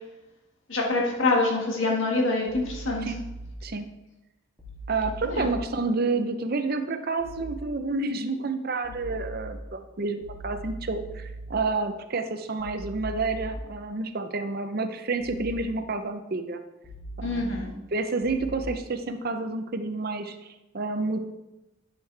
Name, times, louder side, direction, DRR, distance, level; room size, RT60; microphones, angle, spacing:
voice 1, 0.7-3.0 5.3-5.5 17.2-17.7, left 2 dB, 65° left, -1 dB, 1.6 m, -25 dB
sound 1, 2.5-3.5 4.6-5.5 7.2-7.5 8.8-9.5 10.2-11.5 12.6-13.5 15.2-15.5 16.8-17.5 18.2-18.6, right 1 dB, 5° left, 2.4 m, -39 dB
voice 2, 4.9-16.6 17.2-17.6 17.9-21.2, right 3 dB, 45° right, 8 dB, 0.6 m, -29 dB
11.0 x 6.6 x 3.3 m, 1.0 s
head